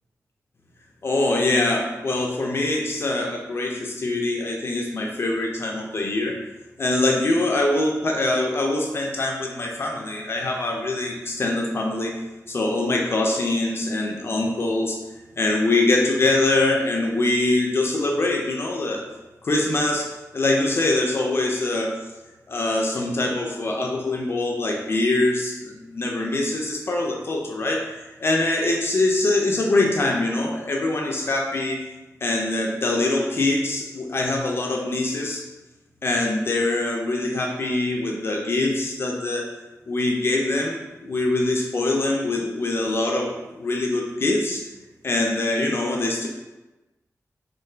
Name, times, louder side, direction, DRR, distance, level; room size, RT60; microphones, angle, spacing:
voice 1, 1.0-6.4 6.8-12.1 12.5-15.0 15.4-19.1 19.4-22.0 22.5-31.8 32.2-35.5 36.0-39.5 39.9-44.7 45.0-46.3, left 2 dB, 45° left, 0 dB, 0.4 m, -23 dB
3.2 x 2.2 x 3.2 m, 1.1 s
wide cardioid pair, 140°, 6 cm